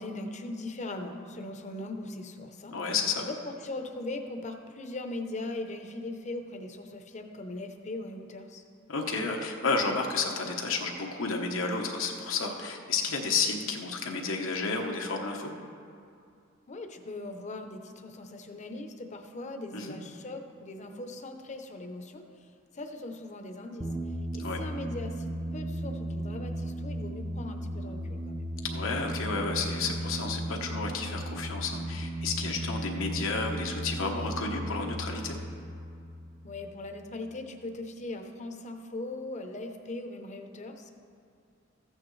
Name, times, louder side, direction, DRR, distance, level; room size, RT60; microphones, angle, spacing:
voice 1, 0.0-8.6 16.7-22.5 22.7-23.9 24.3-28.4 36.4-40.9, left 2 dB, 35° left, 5 dB, 0.7 m, -40 dB
voice 2, 2.7-3.2 8.9-15.5 19.7-20.0 24.4-24.6 28.6-35.4, left 4 dB, 90° left, 1 dB, 1.0 m, -31 dB
sound 1, 23.8-37.0, right 1 dB, 15° right, 0.6 m, -36 dB
14.0 x 8.7 x 3.2 m, 2.4 s
head